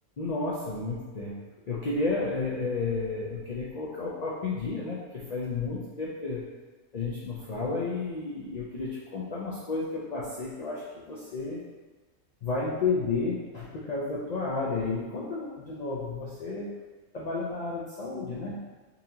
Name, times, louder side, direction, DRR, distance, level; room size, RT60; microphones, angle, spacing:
voice 1, 0.2-6.5 6.9-11.6 12.4-16.7 17.1-18.6, left 3 dB, 75° left, -6 dB, 0.3 m, -32 dB
4.0 x 2.8 x 2.7 m, 1.3 s
omnidirectional pair, 1.3 m